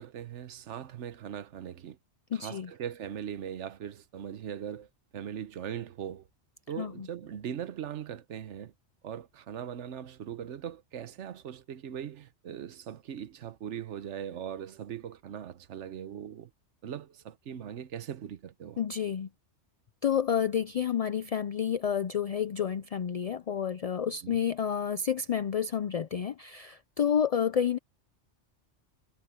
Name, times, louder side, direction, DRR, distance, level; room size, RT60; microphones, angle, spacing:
voice 1, 0.0-2.0 2.3-4.9 5.1-6.2 6.7-8.7 9.0-16.5 16.8-18.8 24.2-24.4, right 9 dB, 80° right, 1.2 m, -40 dB
voice 2, 2.3-2.7 6.8-7.1 18.8-19.3 20.0-27.8, left 8 dB, 65° left, 0.3 m, -30 dB
omnidirectional pair, 1.2 m